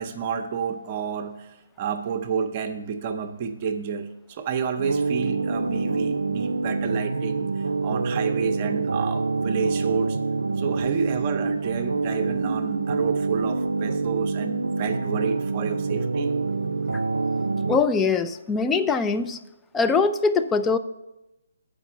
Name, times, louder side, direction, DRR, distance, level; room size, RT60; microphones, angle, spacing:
voice 1, 0.0-10.2 10.6-16.3, right 6 dB, 35° right, 5 dB, 0.7 m, -30 dB
sound 1, 4.8-17.8, right 4 dB, 90° right, 0.4 m, -26 dB
voice 2, 17.7-19.4 19.7-20.8, left 4 dB, 10° left, 10 dB, 0.3 m, -22 dB
7.0 x 5.2 x 6.8 m, 0.93 s
hypercardioid pair, 150°, 0 cm